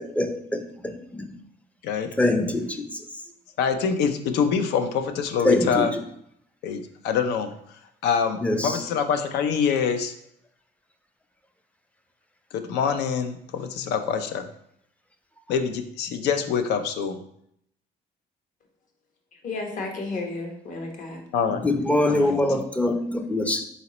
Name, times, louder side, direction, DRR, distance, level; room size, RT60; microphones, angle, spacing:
voice 1, 0.0-1.3 2.2-3.0 5.4-5.9 8.4-8.8 21.6-23.6, left 1 dB, 10° left, 0.4 m, -24 dB
voice 2, 1.8-2.2 3.6-5.9 6.6-10.1 12.5-14.5 15.5-17.2 21.3-21.7 22.1-22.6, left 6 dB, 80° left, 0.5 m, -25 dB
voice 3, 19.3-21.2 22.4-22.6, left 3 dB, 50° left, 1.0 m, -33 dB
4.2 x 4.0 x 2.9 m
cardioid pair, 110°, 17 cm